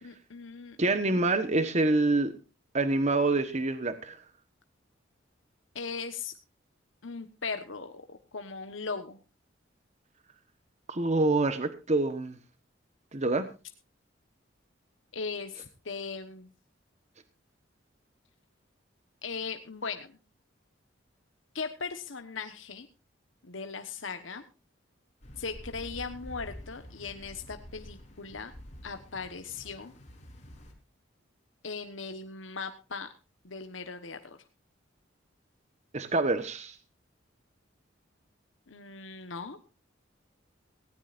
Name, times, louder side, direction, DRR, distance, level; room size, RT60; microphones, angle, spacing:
voice 1, 0.0-1.2 1.6-1.7 5.7-6.3 7.0-9.2 15.1-16.5 19.2-20.1 21.5-22.9 23.4-24.4 25.4-28.5 28.8-29.9 31.6-33.1 33.4-34.4 38.7-39.6, left 4 dB, 80° left, 7 dB, 1.2 m, -38 dB
voice 2, 0.8-2.3 2.7-4.2 10.9-12.4 13.1-13.5 35.9-36.8, right 2 dB, 35° right, 10 dB, 1.2 m, -26 dB
sound 1, 25.2-30.7, equal, 35° left, 4.3 m, -48 dB
18.5 x 17.0 x 2.5 m, 0.30 s
head